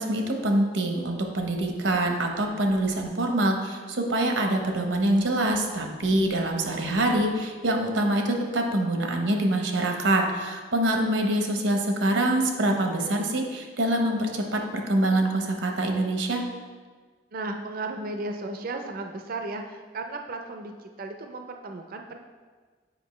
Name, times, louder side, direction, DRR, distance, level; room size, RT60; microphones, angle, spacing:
voice 1, 0.0-16.4, right 1 dB, 80° right, 3 dB, 0.9 m, -25 dB
voice 2, 17.3-22.2, right 2 dB, 50° right, 4 dB, 0.5 m, -35 dB
7.8 x 5.0 x 3.1 m, 1.5 s
head